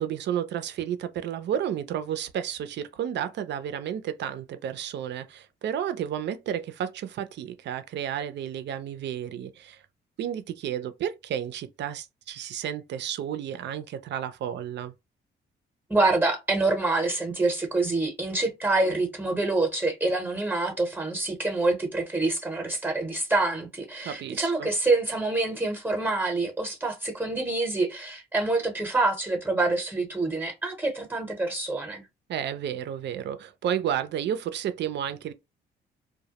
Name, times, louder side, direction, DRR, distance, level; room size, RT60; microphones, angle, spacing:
voice 1, 0.0-9.8 10.2-14.9 24.0-24.7 32.3-35.3, right 9 dB, 60° right, 0.4 m, -32 dB
voice 2, 15.9-32.0, right 2 dB, 10° right, 0.7 m, -26 dB
2.1 x 2.0 x 2.8 m
cardioid pair, 90°, 20 cm